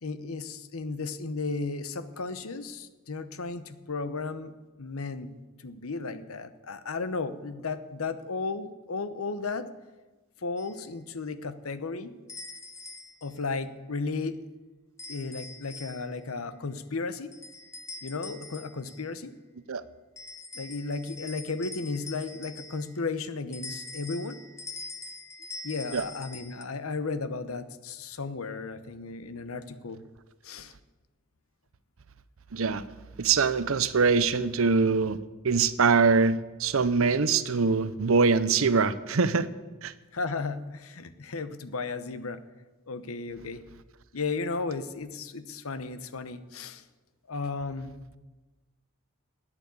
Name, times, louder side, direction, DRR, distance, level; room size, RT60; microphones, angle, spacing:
voice 1, 0.0-4.5 4.8-5.3 5.6-9.7 10.4-12.1 13.2-14.4 15.1-17.3 18.0-19.3 20.5-24.4 25.6-30.0 30.4-30.7 40.1-42.4 42.9-43.6 44.1-46.8 47.3-48.2, left 4 dB, 90° left, 13 dB, 0.9 m, -34 dB
sound 1, 10.6-10.8 12.3-13.4 15.0-16.2 17.3-19.1 20.2-23.0 23.5-26.6, left 3 dB, 15° left, 0.8 m, -44 dB
voice 2, 32.5-32.8 33.2-35.2 35.4-39.5 39.8-39.9, right 5 dB, 75° right, 15 dB, 0.7 m, -23 dB
12.0 x 9.1 x 8.3 m, 1.2 s
head